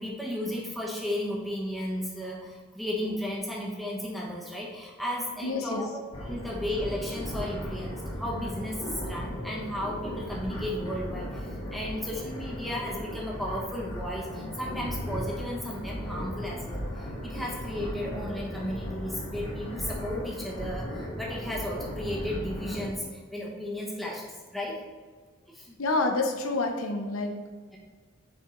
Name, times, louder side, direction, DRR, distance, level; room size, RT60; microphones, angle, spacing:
voice 1, 0.0-24.8 25.5-25.8, left 1 dB, ahead, -4 dB, 1.0 m, -34 dB
voice 2, 5.4-5.9 6.3-6.4 25.8-27.4, left 2 dB, 85° left, 4 dB, 0.8 m, -28 dB
sound 1, 6.1-22.9, equal, 30° left, 1.2 m, -36 dB
6.7 x 4.7 x 3.8 m, 1.5 s
head